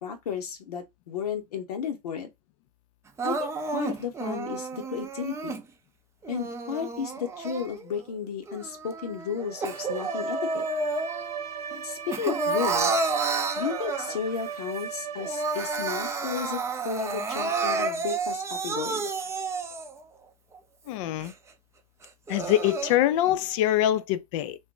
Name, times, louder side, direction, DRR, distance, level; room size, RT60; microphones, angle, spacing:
voice 1, 0.0-2.3 3.2-5.6 6.3-10.6 11.7-13.1 13.6-19.1, left 7 dB, 80° left, 0.9 m, -33 dB
Crying sobbing, 3.2-5.6 6.2-8.0 8.5-11.4 11.7-14.4 14.8-14.9 15.2-20.0 20.5-20.6 21.2-21.3 22.0-23.0, right 3 dB, 15° right, 0.4 m, -30 dB
Bowed string instrument, 9.4-16.5, right 7 dB, 80° right, 0.8 m, -37 dB
voice 2, 20.9-21.3 22.3-24.6, left 13 dB, 55° left, 0.5 m, -24 dB
2.5 x 2.2 x 3.7 m
hypercardioid pair, 105°, 19 cm